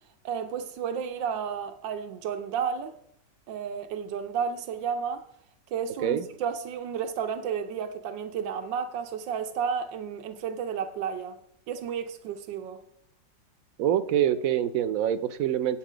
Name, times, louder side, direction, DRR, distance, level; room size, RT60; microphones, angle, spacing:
voice 1, 0.2-2.9 3.5-5.2 5.7-11.4 11.7-12.8, right 7 dB, 85° right, 1.5 m, -32 dB
voice 2, 13.8-15.8, right 10 dB, 65° right, 0.9 m, -25 dB
8.9 x 8.3 x 5.0 m
omnidirectional pair, 1.9 m